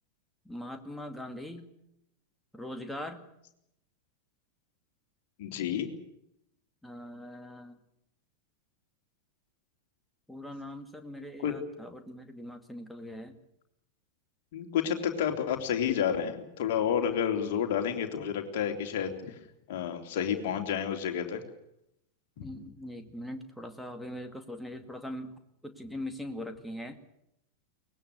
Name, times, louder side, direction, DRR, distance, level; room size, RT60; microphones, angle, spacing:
voice 1, 0.4-1.7 2.5-3.3 6.8-7.8 10.3-13.4 22.4-25.3 25.6-27.0, left 1 dB, 5° left, 6 dB, 2.2 m, -41 dB
voice 2, 5.4-5.9 11.4-11.5 14.5-19.4 19.7-21.4 22.4-22.5, left 8 dB, 50° left, 5 dB, 3.2 m, -30 dB
23.5 x 19.5 x 8.2 m, 0.80 s
figure-of-eight pair, 90°, 0 cm